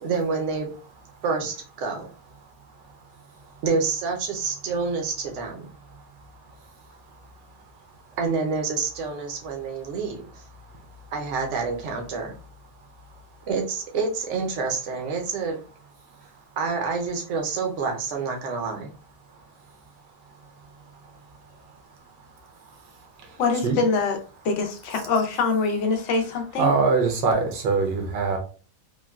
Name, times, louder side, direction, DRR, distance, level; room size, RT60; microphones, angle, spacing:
voice 1, 0.0-0.7 1.2-2.1 3.6-5.7 8.2-10.4 11.1-12.3 13.5-15.6 16.6-18.9, right 4 dB, 60° right, 2 dB, 0.8 m, -28 dB
voice 2, 23.4-24.2 24.4-26.7, left 4 dB, 70° left, 4 dB, 0.7 m, -24 dB
voice 3, 26.6-28.4, right 4 dB, 80° right, 4 dB, 1.4 m, -22 dB
3.6 x 2.2 x 2.2 m, 0.37 s
omnidirectional pair, 1.9 m